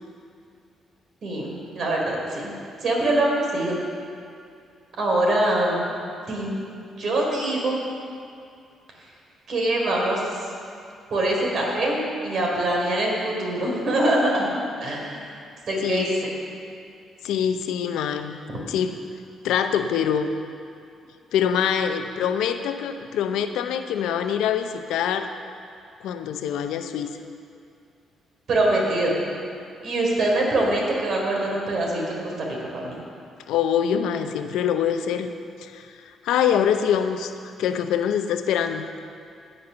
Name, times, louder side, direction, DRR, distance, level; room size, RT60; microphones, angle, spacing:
voice 1, 1.2-2.5 2.8-3.8 5.0-5.8 6.3-6.6 7.0-7.8 9.5-10.5 11.1-14.5 14.8-15.4 15.7-16.3 28.5-29.2 29.8-33.0, right 1 dB, 60° right, -2 dB, 3.5 m, -24 dB
voice 2, 15.8-16.1 17.2-18.4 18.7-19.0 19.4-20.3 21.3-25.3 26.0-27.2 33.5-35.3 35.6-38.9, left 8 dB, 85° left, 8 dB, 0.7 m, -24 dB
16.5 x 5.6 x 6.8 m, 2.4 s
cardioid pair, 90°, 0 cm